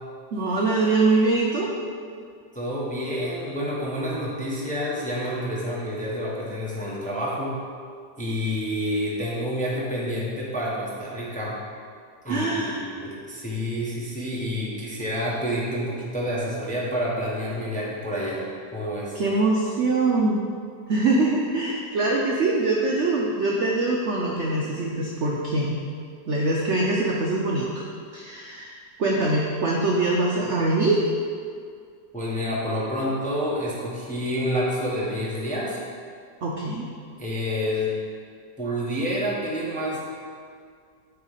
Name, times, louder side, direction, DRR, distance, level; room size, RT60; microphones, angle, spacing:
voice 1, 0.3-1.7 12.3-12.8 19.1-20.4 20.9-25.8 26.3-27.8 28.1-31.0 36.4-36.8, right 2 dB, 60° right, -2 dB, 0.7 m, -23 dB
voice 2, 2.5-7.6 8.2-11.6 12.2-18.4 18.7-19.2 32.1-35.8 37.2-37.9 38.6-40.0, equal, 5° left, -6 dB, 0.9 m, -28 dB
8.9 x 3.3 x 5.6 m, 2.2 s
omnidirectional pair, 2.0 m